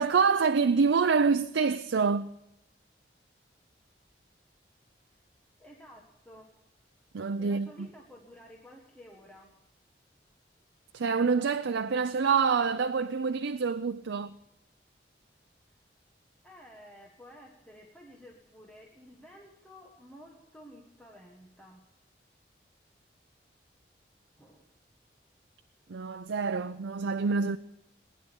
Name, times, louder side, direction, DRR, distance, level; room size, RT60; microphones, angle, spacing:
voice 1, 0.0-2.3 7.1-7.9 10.9-14.3 25.9-27.6, right 5 dB, 90° right, 0.5 m, -26 dB
voice 2, 5.6-6.5 7.4-9.5 16.4-21.8 24.4-24.7, equal, 5° left, 1.5 m, -52 dB
20.0 x 10.5 x 7.0 m
head